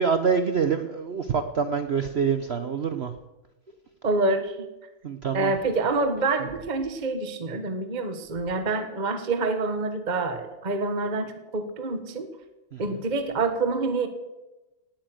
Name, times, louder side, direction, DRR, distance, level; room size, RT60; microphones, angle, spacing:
voice 1, 0.0-3.2 5.0-5.5 6.4-6.5 12.7-13.0, right 6 dB, 70° right, 9 dB, 0.6 m, -26 dB
voice 2, 4.0-4.6 5.3-12.3 12.8-14.1, right 3 dB, 25° right, 8 dB, 1.2 m, -27 dB
18.5 x 9.0 x 7.8 m, 1.0 s
omnidirectional pair, 2.2 m